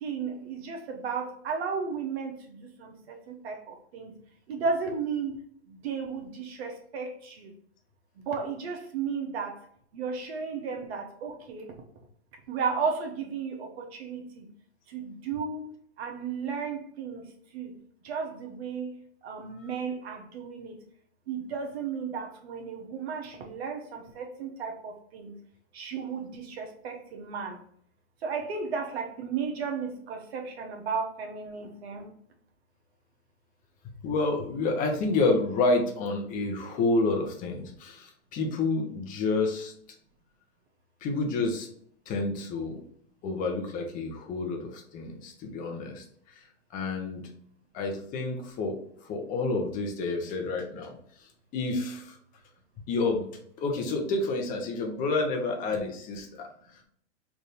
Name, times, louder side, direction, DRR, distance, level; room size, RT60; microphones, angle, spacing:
voice 1, 0.0-4.1 4.5-5.4 5.8-7.5 8.3-9.6 9.9-11.7 12.5-14.4 14.9-15.7 16.0-17.2 17.5-17.7 18.0-18.9 19.2-20.7 21.3-25.3 25.7-27.6 28.2-32.1, right 5 dB, 60° right, 3 dB, 1.0 m, -34 dB
voice 2, 33.8-39.7 41.0-41.7 42.1-42.8 43.2-46.0 46.3-46.4 46.7-47.2 47.7-48.8 49.0-51.0 51.5-52.2 52.9-53.3 53.6-56.5, left 3 dB, 25° left, 2 dB, 0.8 m, -29 dB
3.5 x 2.6 x 4.1 m, 0.62 s
hypercardioid pair, 140°, 36 cm